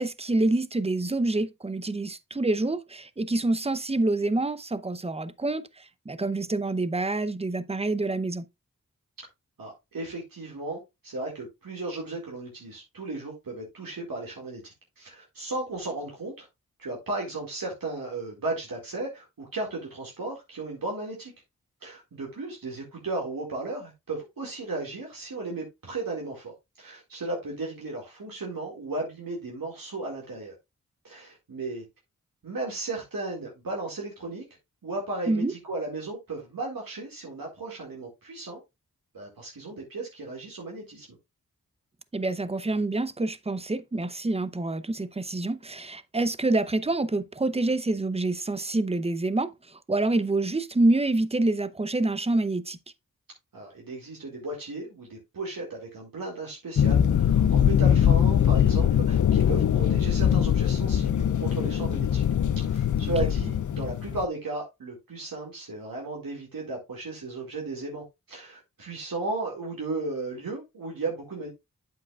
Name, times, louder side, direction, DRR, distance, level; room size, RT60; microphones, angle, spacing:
voice 1, 0.0-8.5 35.3-35.5 42.1-52.8, right 2 dB, 20° right, 0.6 m, -27 dB
voice 2, 9.6-16.5 16.8-21.3 21.8-30.5 31.0-31.8 32.4-34.4 34.8-38.6 39.1-41.1 53.5-62.2 62.6-71.5, right 2 dB, 80° right, 2.1 m, -35 dB
sound 1, 56.8-64.2, left 9 dB, 60° left, 0.5 m, -22 dB
8.3 x 7.6 x 2.4 m
cardioid pair, 50°, 34 cm